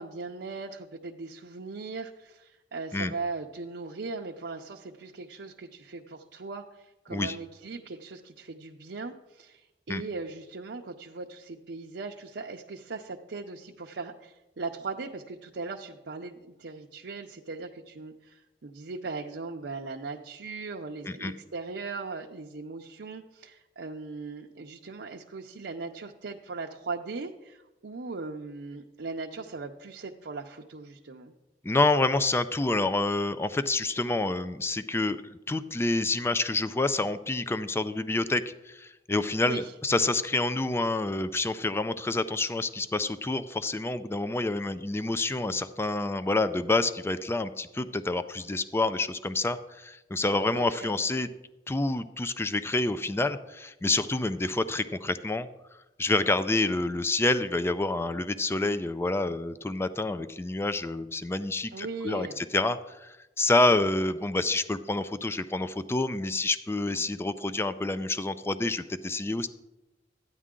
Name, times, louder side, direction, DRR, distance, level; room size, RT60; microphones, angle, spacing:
voice 1, 0.0-31.3 39.4-39.7 50.5-50.9 61.7-62.4, right 3 dB, 80° right, 1 dB, 0.6 m, -39 dB
voice 2, 31.6-35.2 35.5-51.3 51.7-55.5 56.0-69.5, left 2 dB, 15° left, 12 dB, 0.4 m, -28 dB
13.5 x 9.4 x 3.7 m, 1.0 s
head